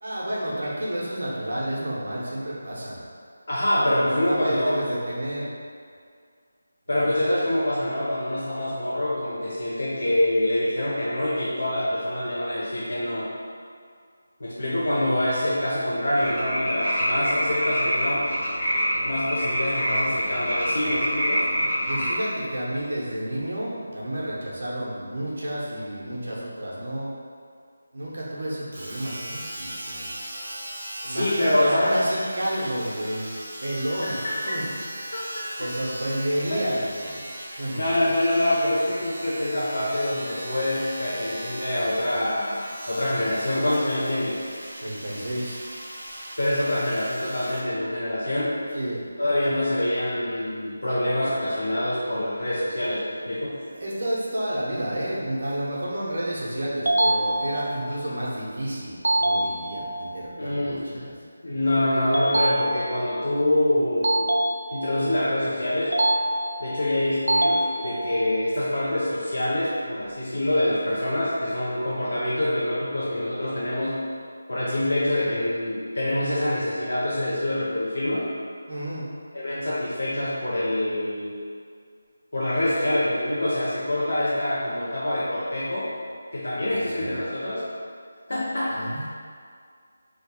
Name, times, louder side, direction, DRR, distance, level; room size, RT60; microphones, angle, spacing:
voice 1, 0.0-3.0 3.7-5.5 6.9-7.1 14.5-14.8 21.6-27.1 27.9-30.1 31.0-33.3 33.6-34.1 34.4-34.7 35.6-37.2 37.6-37.8 44.8-45.7 48.7-49.1 53.6-61.2 78.7-79.1 86.6-87.2 88.7-89.1, right 1 dB, 60° right, -5 dB, 1.0 m, -30 dB
voice 2, 3.5-4.9 6.9-13.3 14.4-18.3 19.0-21.5 31.0-32.0 34.0-34.1 34.5-34.6 36.5-36.6 37.8-44.4 46.4-48.6 49.2-53.6 60.4-61.1 61.4-64.3 64.7-65.9 66.6-74.0 74.5-78.3 79.3-81.3 82.3-85.9 86.3-87.6 88.3-88.8, left 1 dB, 70° left, -8 dB, 0.7 m, -25 dB
sound 1, 16.2-22.2, equal, 25° left, 1.1 m, -26 dB
Domestic sounds home sounds, 28.7-47.7 48.4-48.5, right 1 dB, 30° right, 0.6 m, -38 dB
sound 2, 56.9-57.9 59.0-60.0 62.1-63.2 64.0-65.1 65.9-66.8 67.3-68.3, right 1 dB, 85° right, 0.3 m, -24 dB
3.1 x 2.3 x 4.3 m, 2.1 s
figure-of-eight pair, 175°, 0 cm